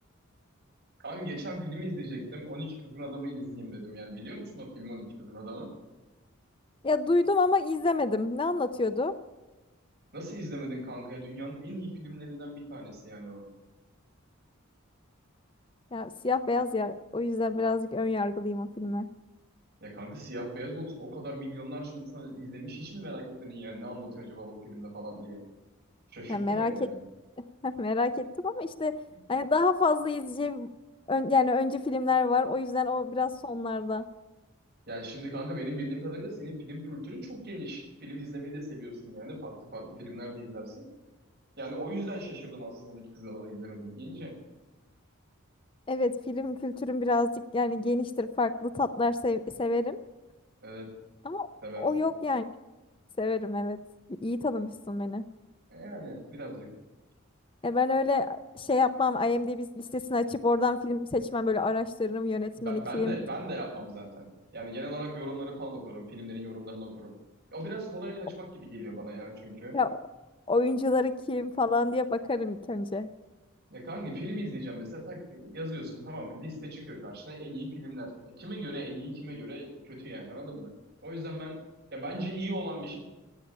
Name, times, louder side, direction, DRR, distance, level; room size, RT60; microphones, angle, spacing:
voice 1, 1.0-5.7 10.1-13.4 19.8-25.4 26.1-27.0 34.9-40.9 41.6-44.4 50.6-51.0 51.6-51.9 55.7-56.7 62.5-67.1 67.5-69.8 73.7-80.7 81.0-81.6 81.9-83.0, right 1 dB, 50° right, -1 dB, 6.1 m, -39 dB
voice 2, 6.8-9.1 15.9-19.1 26.3-26.9 27.6-28.9 29.3-30.7 31.1-34.0 45.9-50.0 51.2-51.5 51.8-52.5 53.2-53.8 54.2-55.2 57.6-63.2 69.7-70.0 70.5-73.1, left 3 dB, 25° left, 10 dB, 0.6 m, -28 dB
16.5 x 8.4 x 10.0 m, 1.1 s
head